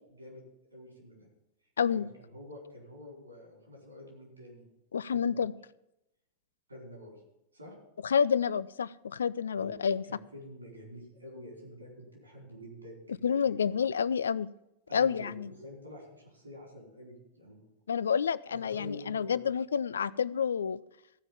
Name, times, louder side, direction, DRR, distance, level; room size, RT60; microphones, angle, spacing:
voice 1, 0.1-1.3 1.9-4.6 5.1-5.5 6.7-7.2 7.5-7.7 9.5-13.5 14.9-17.6 18.5-19.4, left 1 dB, 80° right, -2 dB, 4.6 m, -48 dB
voice 2, 4.9-5.5 8.0-10.0 13.2-14.5 14.9-15.5 17.9-20.8, left 7 dB, 70° left, 20 dB, 0.3 m, -29 dB
15.0 x 5.2 x 7.0 m, 0.86 s
figure-of-eight pair, 90°, 0 cm